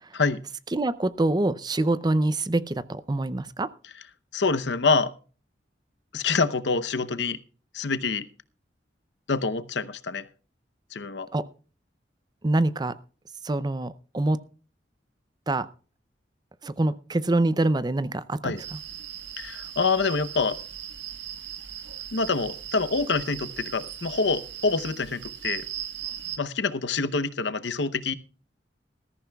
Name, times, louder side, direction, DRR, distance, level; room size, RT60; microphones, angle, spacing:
voice 1, 0.7-3.7 11.3-11.5 12.4-12.9 13.4-14.4 15.5-15.7 16.6-18.6, right 2 dB, 25° right, 16 dB, 0.5 m, -25 dB
voice 2, 4.3-5.1 6.1-7.4 7.7-8.3 9.3-10.3 10.9-11.3 18.4-18.6 19.4-20.6 22.1-25.7 26.4-28.1, left 4 dB, 75° left, 12 dB, 0.8 m, -26 dB
sound 1, 18.6-26.4, right 10 dB, 90° right, 1.4 m, -38 dB
20.0 x 14.0 x 2.3 m, 0.37 s
head